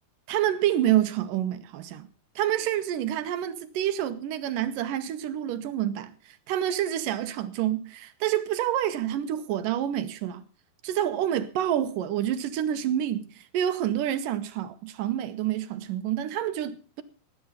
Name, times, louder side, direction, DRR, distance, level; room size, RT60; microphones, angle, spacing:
voice 1, 0.3-2.1 2.4-10.4 10.8-17.0, right 11 dB, 75° right, 2.4 m, -28 dB
18.5 x 9.2 x 5.6 m
omnidirectional pair, 4.2 m